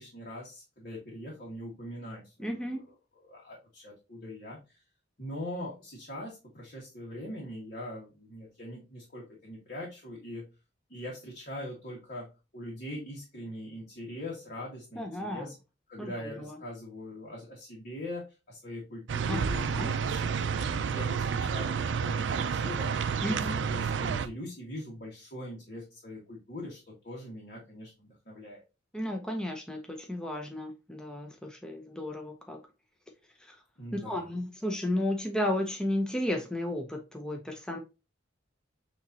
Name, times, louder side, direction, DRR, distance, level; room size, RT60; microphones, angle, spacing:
voice 1, 0.0-3.0 3.2-4.6 5.2-10.5 10.9-15.5 15.9-20.4 20.6-28.6 33.8-34.4, left 1 dB, 50° left, -5 dB, 1.6 m, -42 dB
voice 2, 2.4-2.9 15.0-15.5 16.0-16.6 19.3-19.9 23.2-23.6 28.9-32.6 33.4-33.6 33.9-37.8, left 1 dB, 5° left, 2 dB, 0.6 m, -33 dB
sound 1, 19.1-24.3, right 6 dB, 75° right, 0.4 m, -30 dB
6.4 x 3.0 x 2.7 m, 0.27 s
head